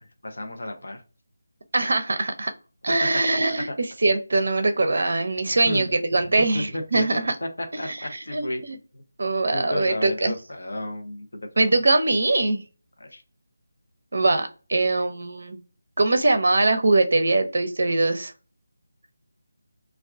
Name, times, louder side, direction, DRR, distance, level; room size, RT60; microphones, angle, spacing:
voice 1, 0.2-1.0 3.0-3.1 3.7-3.8 5.6-5.9 6.5-8.6 8.9-9.0 9.5-11.7 13.0-13.2 14.8-15.0, left 1 dB, 70° left, 5 dB, 0.7 m, -33 dB
voice 2, 1.7-2.5 2.8-7.3 7.8-8.8 9.2-10.3 11.6-12.6 14.1-15.6 16.0-18.3, right 2 dB, 65° right, 8 dB, 0.5 m, -22 dB
2.3 x 2.3 x 3.4 m, 0.35 s
figure-of-eight pair, 160°, 0 cm